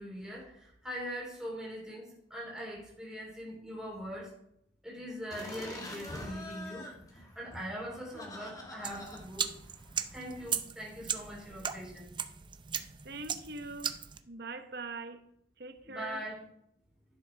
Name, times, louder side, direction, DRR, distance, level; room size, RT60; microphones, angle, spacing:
voice 1, 0.0-4.3 4.8-9.5 10.1-12.1 15.8-16.4, equal, 5° right, 3.1 m, -42 dB
sound 1, 5.3-10.5, left 1 dB, 20° left, 1.9 m, -46 dB
sound 2, 8.8-14.2, right 7 dB, 25° right, 0.6 m, -38 dB
voice 2, 13.0-14.0 14.3-15.2 15.6-16.2, right 3 dB, 65° right, 1.0 m, -42 dB
11.0 x 6.5 x 4.6 m
head